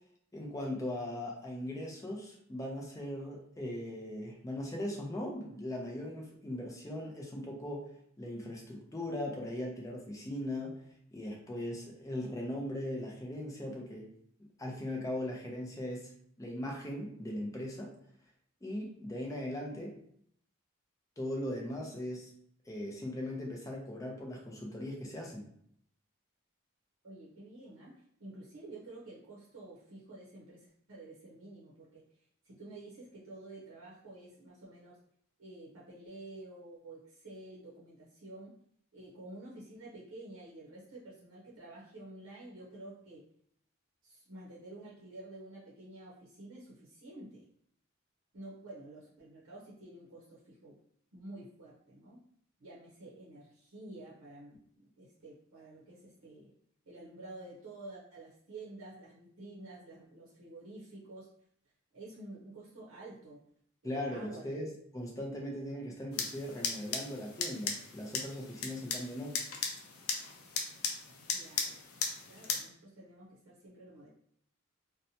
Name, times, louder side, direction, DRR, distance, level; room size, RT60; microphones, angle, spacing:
voice 1, 0.3-7.9 8.2-10.8 11.1-14.1 14.6-16.1 16.4-17.9 18.6-19.9 21.2-22.3 22.7-25.5 63.8-69.4, left 1 dB, 15° left, -1 dB, 0.5 m, -39 dB
voice 2, 27.0-32.1 32.4-35.0 35.4-38.5 38.9-43.2 44.0-47.4 48.3-50.8 51.1-52.2 52.6-56.5 56.9-61.3 61.9-63.4 63.8-64.7 71.3-71.8 72.3-74.1, right 2 dB, 75° right, -5 dB, 0.7 m, -50 dB
sound 1, 66.1-72.6, left 5 dB, 85° left, 0.4 m, -37 dB
2.8 x 2.1 x 2.7 m, 0.66 s
head